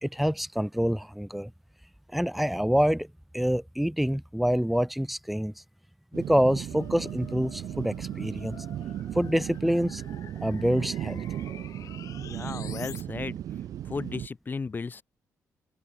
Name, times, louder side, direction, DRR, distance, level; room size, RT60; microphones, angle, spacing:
voice 1, 0.0-1.5 2.1-3.1 3.3-5.5 6.1-8.6 9.1-10.0 10.4-11.2, equal, ahead, 1.6 m, -26 dB
sound 1, 6.1-14.3, right 11 dB, 75° right, 1.7 m, -36 dB
sound 2, 6.7-13.0, left 10 dB, 70° left, 2.2 m, -48 dB
voice 2, 12.2-13.4 13.9-15.0, left 4 dB, 35° left, 0.8 m, -35 dB
cardioid pair, 70°, 6 cm